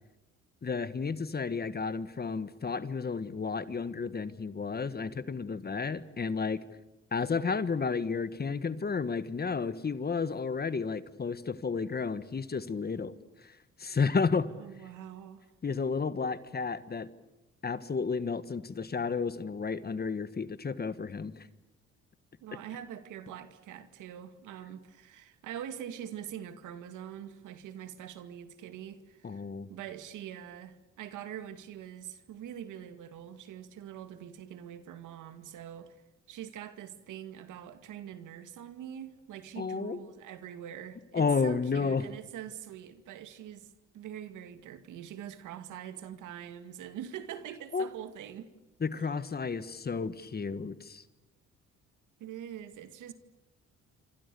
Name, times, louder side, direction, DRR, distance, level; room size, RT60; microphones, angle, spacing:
voice 1, 0.6-6.6 7.1-13.1 13.4-13.5 13.8-14.5 15.6-17.1 17.6-21.5 29.2-29.7 39.6-40.0 41.1-42.0 47.7-47.9 48.8-51.0, left 5 dB, 30° left, 1.5 m, -32 dB
voice 2, 14.5-15.4 22.4-29.4 29.7-36.0 36.3-48.5 49.0-49.1 52.2-53.1, right 10 dB, 85° right, 2.3 m, -44 dB
27.0 x 26.0 x 7.0 m
cardioid pair, 90°, 30 cm